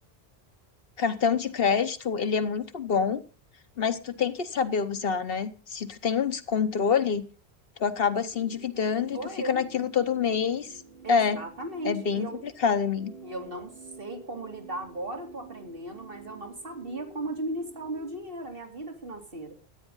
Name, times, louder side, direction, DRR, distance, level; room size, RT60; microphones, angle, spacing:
voice 1, 1.0-3.2 3.8-7.3 7.8-9.2 9.4-10.7 11.1-11.4 11.8-13.1, left 6 dB, 65° left, 11 dB, 1.2 m, -26 dB
sound 1, 8.3-18.2, right 4 dB, 90° right, 5.9 m, -49 dB
voice 2, 9.1-9.6 11.0-12.4 13.2-13.7 14.0-19.5, right 1 dB, 60° right, 3 dB, 2.8 m, -36 dB
13.5 x 9.1 x 5.5 m, 0.37 s
omnidirectional pair, 1.1 m